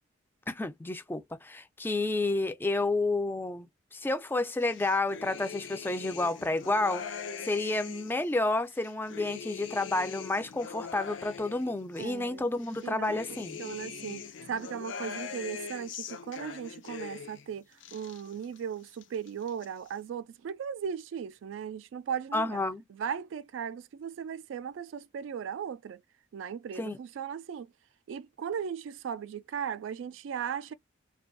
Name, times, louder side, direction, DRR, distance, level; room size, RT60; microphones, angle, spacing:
voice 1, 0.5-7.0 7.4-13.6 22.3-22.8 26.8-27.0, left 2 dB, 10° left, 0.3 m, -30 dB
sound 1, 4.6-8.2 8.7-12.1 12.6-17.4 17.7-18.6 18.9-19.7, left 6 dB, 70° left, 0.5 m, -42 dB
voice 2, 12.0-12.5 12.8-13.2 13.6-17.6 17.9-22.6 22.9-26.0 26.3-27.7 28.1-30.7, right 7 dB, 75° right, 0.3 m, -37 dB
2.5 x 2.2 x 2.5 m
head